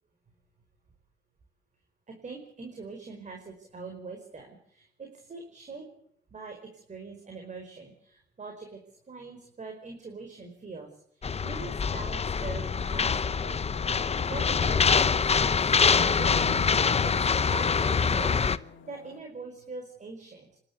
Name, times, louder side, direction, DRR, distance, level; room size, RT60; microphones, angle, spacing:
voice 1, 2.1-5.8 6.3-8.8 9.1-13.6 14.3-15.1 15.4-16.4 17.0-18.4 18.9-20.6, right 4 dB, 35° right, 3 dB, 4.9 m, -43 dB
sound 1, 11.2-18.6, left 6 dB, 30° left, 0.9 m, -25 dB
sound 2, 13.7-19.2, left 3 dB, 70° left, 2.1 m, -44 dB
27.0 x 12.5 x 8.2 m, 0.69 s
cardioid pair, 90°, 20 cm